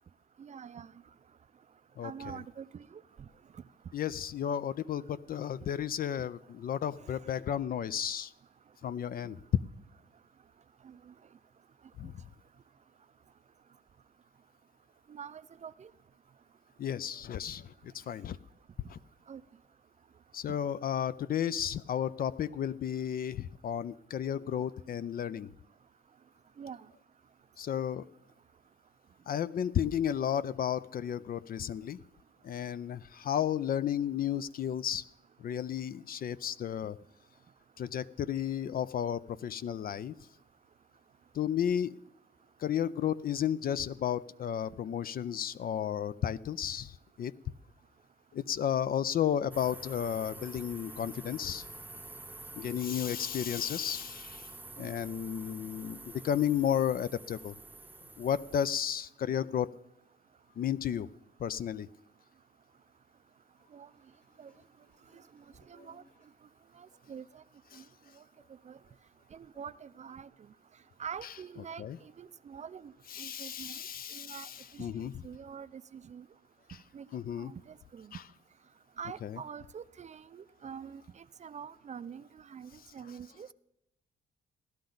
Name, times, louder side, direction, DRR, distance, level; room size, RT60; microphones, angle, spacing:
voice 1, 0.4-0.9 2.0-3.3 7.0-7.1 9.2-9.4 10.8-11.0 15.1-15.9 19.3-19.4 26.6-26.9 54.8-54.9 63.7-63.9 64.4-64.5 65.1-66.0 66.8-67.4 67.7-67.8 68.2-68.3 68.7-68.8 69.3-70.3 71.0-72.9 73.2-73.8 74.1-74.5 74.7-74.9 75.2-76.3 76.9-77.1 77.4-78.1 79.0-83.5, right 7 dB, 35° right, 16 dB, 0.4 m, -45 dB
voice 2, 3.9-8.3 8.8-9.4 12.0-12.1 16.8-18.4 18.9-19.0 20.3-25.5 27.6-28.0 29.3-32.0 32.4-35.0 35.4-37.0 37.8-40.1 41.3-42.0 42.6-47.3 48.3-51.6 52.5-54.5 54.8-57.5 58.2-59.7 60.6-61.1 61.4-61.9 67.7-67.8 71.8-72.0 73.1-75.1 77.1-77.5 78.1-78.2 79.2-79.4, left 9 dB, 50° left, 17 dB, 0.4 m, -33 dB
sound 1, 49.5-58.8, right 2 dB, 10° right, 0.8 m, -48 dB
sound 2, 60.4-60.7 63.4-66.3 67.2-67.3, left 4 dB, 70° left, 5.5 m, -68 dB
16.0 x 11.5 x 3.9 m, 0.82 s
cardioid pair, 90°, 20 cm